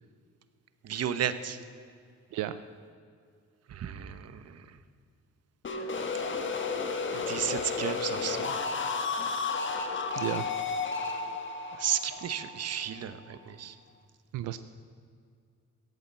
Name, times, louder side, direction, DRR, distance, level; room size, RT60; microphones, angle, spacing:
voice 1, 0.8-1.6 3.7-4.6 7.1-8.6 11.8-13.7, right 9 dB, 55° right, 12 dB, 1.0 m, -33 dB
voice 2, 2.3-2.6 10.2-10.4 14.3-14.6, right 13 dB, 90° right, 11 dB, 0.6 m, -32 dB
sound 1, 5.6-13.4, left 4 dB, 40° left, 1.5 m, -33 dB
16.0 x 8.8 x 7.6 m, 2.2 s
cardioid pair, 90°, 30 cm